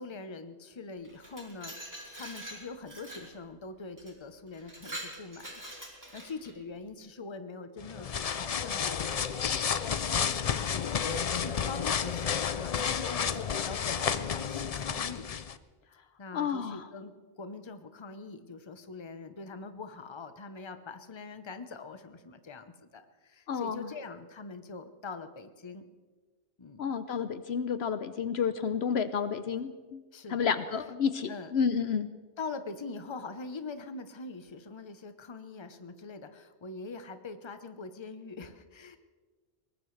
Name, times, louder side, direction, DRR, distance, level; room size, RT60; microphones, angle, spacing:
voice 1, 0.0-11.1 11.4-15.3 16.2-25.8 26.6-27.0 30.1-30.6 31.3-31.5 32.4-39.0, left 4 dB, 25° left, 9 dB, 0.8 m, -43 dB
Glass, 1.0-3.3 4.0-4.1 4.5-6.6, right 1 dB, 15° right, 2.5 m, -44 dB
sound 1, 7.8-15.6, left 7 dB, 50° left, 0.5 m, -31 dB
voice 2, 16.3-16.8 23.5-23.9 26.8-30.0 30.3-32.1, left 6 dB, 65° left, 12 dB, 0.9 m, -30 dB
22.0 x 19.0 x 3.3 m, 1.4 s
omnidirectional pair, 1.2 m